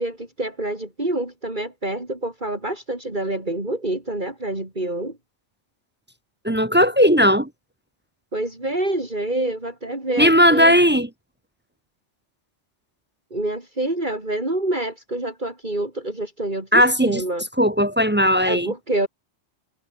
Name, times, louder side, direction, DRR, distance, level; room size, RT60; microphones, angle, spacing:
voice 1, 0.0-5.2 8.3-10.8 13.3-17.5 18.4-19.1, right 1 dB, 40° right, 5.0 m, -27 dB
voice 2, 6.4-7.5 10.2-11.1 16.7-17.2 17.6-18.7, equal, 10° right, 0.6 m, -17 dB
omnidirectional pair, 1.2 m